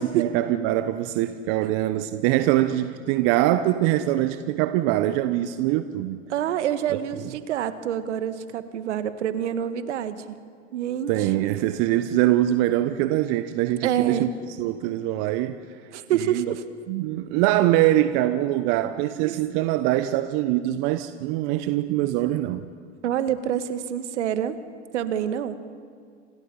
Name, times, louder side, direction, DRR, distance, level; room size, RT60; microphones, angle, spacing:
voice 1, 0.0-6.2 6.9-7.0 11.1-14.3 14.6-15.6 16.1-16.5 16.9-22.6, right 14 dB, 50° right, 1.1 m, -23 dB
voice 2, 6.3-10.2 10.7-11.3 13.8-14.3 15.9-16.6 19.2-19.4 23.0-24.6 24.9-25.5, right 10 dB, 70° right, 1.7 m, -27 dB
29.5 x 27.0 x 5.6 m
hypercardioid pair, 85°, 36 cm